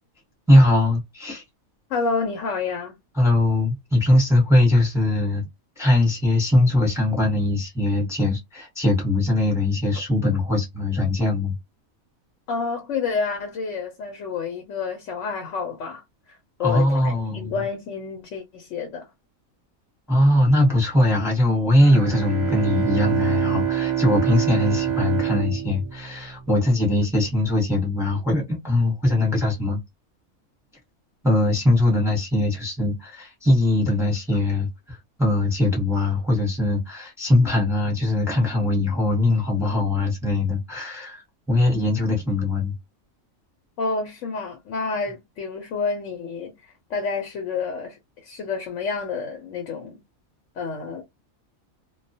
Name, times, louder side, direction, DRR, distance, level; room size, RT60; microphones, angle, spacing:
voice 1, 0.5-1.4 3.2-5.5 5.8-11.5 16.6-17.6 20.1-29.8 31.2-42.7, left 1 dB, ahead, 0.8 m, -21 dB
voice 2, 1.9-3.0 12.5-16.0 16.3-19.1 43.8-50.0 50.6-51.0, left 4 dB, 65° left, 1.0 m, -29 dB
Bowed string instrument, 21.8-26.7, right 11 dB, 40° right, 0.7 m, -26 dB
2.3 x 2.2 x 2.6 m
omnidirectional pair, 1.5 m